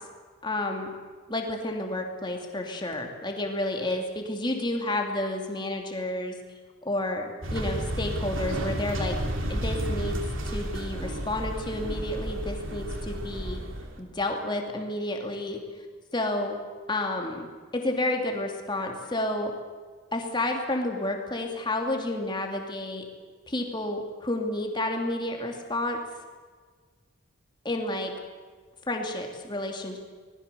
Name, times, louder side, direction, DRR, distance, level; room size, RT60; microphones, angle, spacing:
voice 1, 0.4-0.9 1.3-6.3 6.8-9.1 9.5-13.6 14.0-15.6 16.1-16.6 16.9-17.5 17.7-19.5 20.1-23.0 23.5-26.0 27.6-28.1 28.9-30.0, left 1 dB, 20° left, 2 dB, 2.8 m, -30 dB
sound 1, 7.4-14.0, right 1 dB, 70° right, 2.9 m, -32 dB
25.0 x 20.0 x 7.0 m, 1.5 s
head